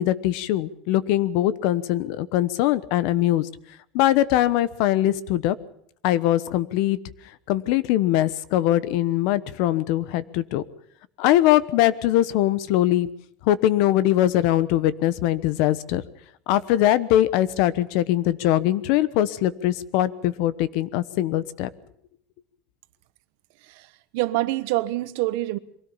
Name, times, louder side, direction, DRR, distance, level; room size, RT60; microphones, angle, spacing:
voice 1, 0.0-3.5 3.9-5.6 6.0-7.0 7.5-10.6 11.2-13.1 13.5-16.0 16.5-21.7, left 13 dB, 55° left, 1.0 m, -22 dB
voice 2, 24.1-25.6, right 18 dB, 70° right, 1.2 m, -25 dB
23.5 x 17.0 x 7.2 m
cardioid pair, 175°, 0 cm